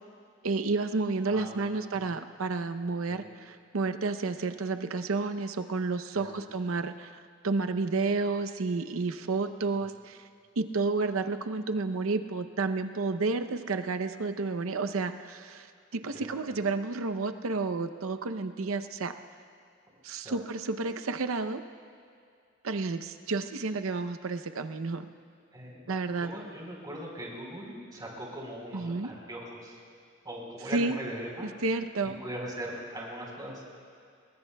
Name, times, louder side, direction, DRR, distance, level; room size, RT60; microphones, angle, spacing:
voice 1, 0.4-7.1 7.4-10.2 10.6-15.7 15.9-19.1 20.0-21.6 22.6-25.1 25.9-26.3 28.7-29.1 30.7-31.0 31.6-32.2, right 3 dB, 80° right, 9 dB, 0.7 m, -31 dB
voice 2, 1.3-2.0 3.1-3.3 6.1-6.4 9.7-9.9 16.1-16.4 20.2-20.4 25.5-29.8 30.2-31.5 32.2-33.6, right 1 dB, 20° right, -2 dB, 3.9 m, -40 dB
27.0 x 21.0 x 2.3 m, 2.3 s
head